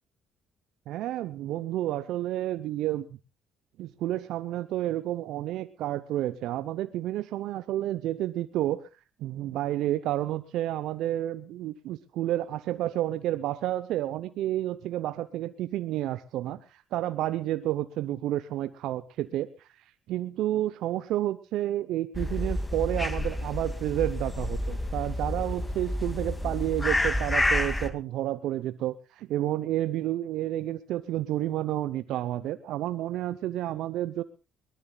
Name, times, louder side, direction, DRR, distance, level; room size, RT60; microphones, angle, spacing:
voice 1, 0.9-3.1 3.8-8.8 9.2-19.7 20.1-34.2, right 13 dB, 70° right, 13 dB, 0.7 m, -30 dB
sound 1, 22.1-27.9, left 1 dB, 15° left, 2.3 m, -29 dB
22.0 x 19.0 x 2.3 m, 0.32 s
hypercardioid pair, 55°, 0 cm